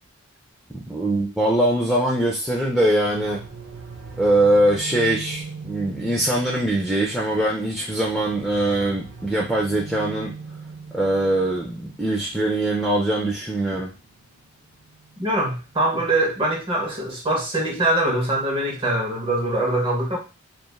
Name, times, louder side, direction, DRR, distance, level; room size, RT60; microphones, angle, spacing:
voice 1, 0.7-3.4 4.2-10.3 10.9-13.9, right 1 dB, ahead, -4 dB, 0.3 m, -22 dB
sound 1, 3.0-15.8, right 4 dB, 85° right, 0.5 m, -41 dB
voice 2, 15.2-20.2, right 1 dB, 25° right, -1 dB, 0.7 m, -23 dB
3.1 x 2.3 x 2.2 m, 0.32 s
head